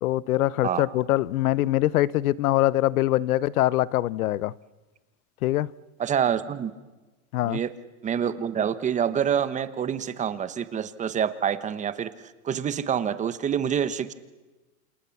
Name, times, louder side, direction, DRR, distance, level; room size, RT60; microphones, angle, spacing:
voice 1, 0.0-4.5 5.4-5.7 7.3-7.6, left 15 dB, 80° left, 0.8 m, -23 dB
voice 2, 6.0-6.7 7.4-7.7 8.0-12.1 12.4-14.1, right 8 dB, 15° right, 1.0 m, -26 dB
28.0 x 28.0 x 7.2 m
supercardioid pair, 150°, 42 cm